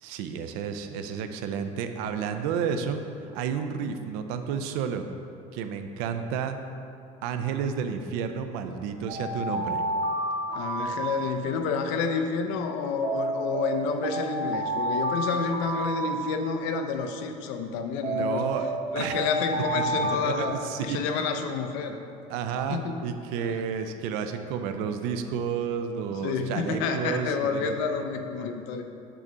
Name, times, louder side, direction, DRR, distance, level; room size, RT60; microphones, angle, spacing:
voice 1, 0.0-3.0 3.3-5.0 5.5-6.6 7.2-9.8 18.1-18.7 18.9-19.2 19.7-21.1 22.3-27.7, right 7 dB, 75° right, 8 dB, 0.5 m, -31 dB
Alarm, 9.1-11.7 13.0-16.7 18.0-21.2, right 1 dB, 40° right, 0.8 m, -30 dB
voice 2, 10.5-18.5 18.9-22.0 22.7-23.0 23.4-23.6 26.2-28.8, left 5 dB, 85° left, 6 dB, 0.6 m, -29 dB
6.2 x 3.9 x 5.5 m, 2.6 s
cardioid pair, 165°, 15 cm